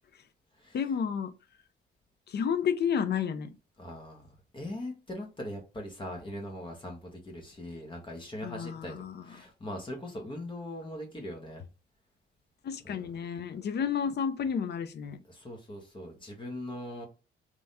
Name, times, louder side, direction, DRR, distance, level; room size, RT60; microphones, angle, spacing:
voice 1, 0.7-1.3 2.3-3.5 8.4-9.3 12.6-15.2, left 7 dB, 55° left, 0.8 m, -31 dB
voice 2, 3.8-11.6 12.8-13.0 13.5-13.6 15.3-17.1, left 1 dB, 25° left, 1.5 m, -41 dB
3.5 x 3.0 x 4.2 m
cardioid pair, 90°, 20 cm